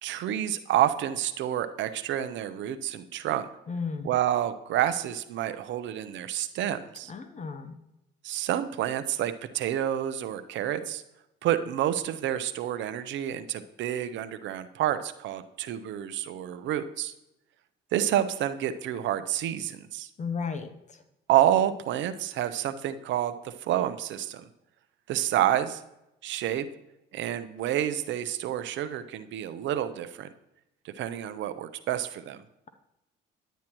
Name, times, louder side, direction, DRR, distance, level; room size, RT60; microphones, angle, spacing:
voice 1, 0.0-3.5 4.0-7.1 8.2-11.0 11.4-17.1 17.9-20.1 21.3-24.4 25.1-25.8 26.2-26.7 27.1-30.3 30.8-32.4, right 11 dB, 65° right, 11 dB, 0.6 m, -29 dB
voice 2, 3.7-4.1 7.1-7.8 20.2-21.0, left 5 dB, 35° left, 9 dB, 0.8 m, -34 dB
9.7 x 9.2 x 3.0 m, 0.89 s
supercardioid pair, 75°, 21 cm